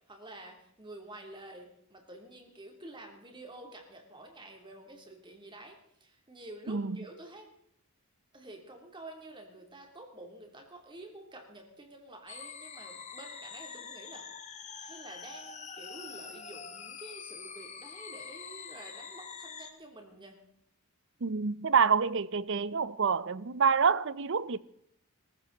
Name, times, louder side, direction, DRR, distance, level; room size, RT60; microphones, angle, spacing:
voice 1, 0.1-7.5 8.3-14.2 14.8-20.4, right 1 dB, 20° right, 3.0 m, -49 dB
sound 1, 12.3-19.7, left 6 dB, 30° left, 1.4 m, -45 dB
voice 2, 21.2-24.6, right 6 dB, 55° right, 0.6 m, -27 dB
19.0 x 15.0 x 4.0 m
head